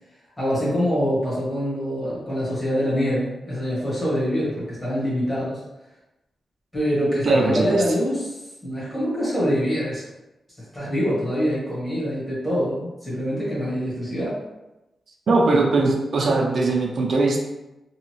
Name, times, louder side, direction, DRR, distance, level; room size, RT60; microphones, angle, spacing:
voice 1, 0.4-5.6 6.7-10.0 10.6-14.4, equal, 10° left, -9 dB, 1.1 m, -25 dB
voice 2, 7.2-7.8 15.3-17.4, right 3 dB, 50° right, 0 dB, 0.4 m, -20 dB
2.7 x 2.4 x 2.9 m, 0.98 s
wide cardioid pair, 155°, 0 cm